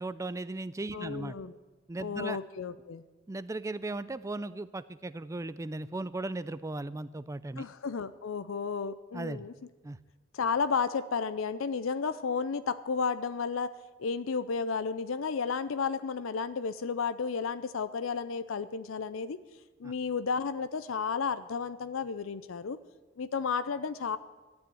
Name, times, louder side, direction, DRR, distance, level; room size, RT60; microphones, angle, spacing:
voice 1, 0.0-1.4 1.9-2.4 3.3-7.7 9.1-9.5 9.8-10.0 19.8-19.9, right 2 dB, 15° right, 15 dB, 0.4 m, -37 dB
voice 2, 0.9-1.6 2.0-3.0 7.6-9.5 10.3-13.7 14.0-19.4 19.8-22.8 23.2-24.2, left 5 dB, 75° left, 13 dB, 0.5 m, -32 dB
13.0 x 8.7 x 9.1 m, 1.2 s
head